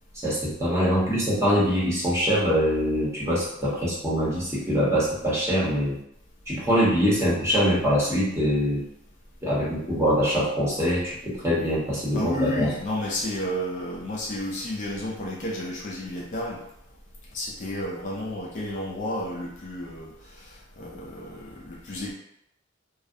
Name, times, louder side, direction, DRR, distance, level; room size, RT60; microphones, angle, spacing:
voice 1, 0.2-6.0 6.5-8.8 9.4-12.7, equal, 15° right, -7 dB, 0.8 m, -23 dB
voice 2, 12.1-16.6 17.3-22.1, left 1 dB, 40° left, -3 dB, 0.4 m, -31 dB
2.3 x 2.0 x 2.6 m, 0.75 s
head